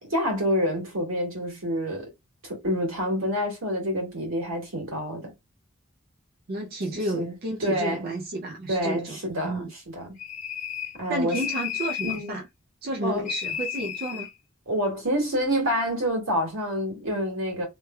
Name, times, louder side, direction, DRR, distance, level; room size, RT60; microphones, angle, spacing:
voice 1, 0.0-2.1 2.4-5.3 7.1-7.3 7.6-8.1 8.7-10.1 10.9-11.4 12.0-12.4 13.0-13.3 14.7-17.6, equal, 80° right, 2.0 m, -27 dB
voice 2, 6.5-9.2 9.4-9.7 11.1-12.5 12.8-14.3, right 1 dB, 50° right, 0.5 m, -31 dB
sound 1, 10.2-11.0 11.3-12.3 13.3-14.3, left 9 dB, 35° left, 0.8 m, -32 dB
3.1 x 3.1 x 2.2 m
head